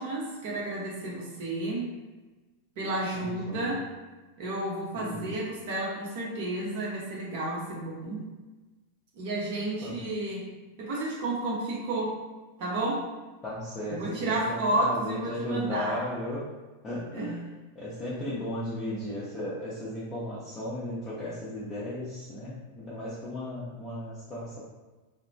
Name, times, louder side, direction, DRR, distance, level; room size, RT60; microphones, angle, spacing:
voice 1, 0.0-1.9 2.8-3.9 4.4-8.2 9.2-10.5 10.8-12.2 12.6-13.1 13.9-16.0 17.1-17.3, right 2 dB, 50° right, -4 dB, 0.6 m, -31 dB
voice 2, 3.1-3.8 5.0-5.3 9.8-10.0 13.4-16.4 16.8-24.6, left 1 dB, 20° left, -10 dB, 0.7 m, -35 dB
2.9 x 2.0 x 2.6 m, 1.2 s
figure-of-eight pair, 90°, 0 cm